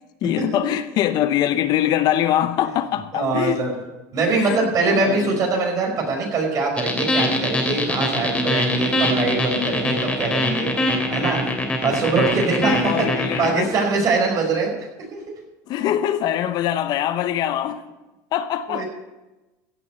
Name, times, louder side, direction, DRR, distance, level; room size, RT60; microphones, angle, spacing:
voice 1, 0.2-3.6 4.3-5.4 9.1-9.2 11.8-11.9 12.6-13.7 15.7-17.8 18.3-18.8, left 11 dB, 50° left, 0.9 m, -23 dB
voice 2, 3.1-3.7 4.1-11.4 11.8-13.1 13.4-14.7 15.1-15.2 18.7-18.8, right 3 dB, 40° right, 5.1 m, -22 dB
sound 1, 6.8-13.5, left 1 dB, 15° left, 3.1 m, -22 dB
16.0 x 6.9 x 8.2 m
supercardioid pair, 125°, 9 cm